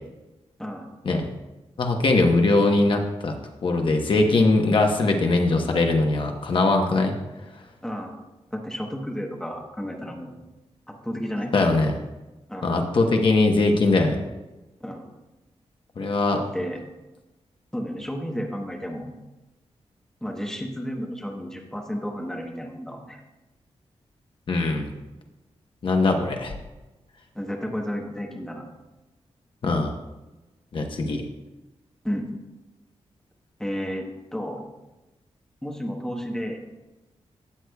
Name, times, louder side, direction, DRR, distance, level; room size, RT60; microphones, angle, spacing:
voice 1, 0.6-0.9 7.8-8.2 8.5-10.4 10.9-11.5 12.5-12.8 14.8-15.1 16.3-16.8 17.7-19.1 20.2-23.2 27.3-28.6 32.0-32.4 33.6-34.1 34.3-34.6 35.6-36.7, equal, 5° left, 1 dB, 1.0 m, -32 dB
voice 2, 1.8-3.3 3.6-7.1 11.5-11.9 12.6-14.2 16.0-16.4 24.5-24.9 25.8-26.5 29.6-29.9 30.7-31.2, left 2 dB, 50° left, 3 dB, 1.0 m, -21 dB
13.0 x 8.0 x 2.3 m, 1.1 s
wide cardioid pair, 160°, 11 cm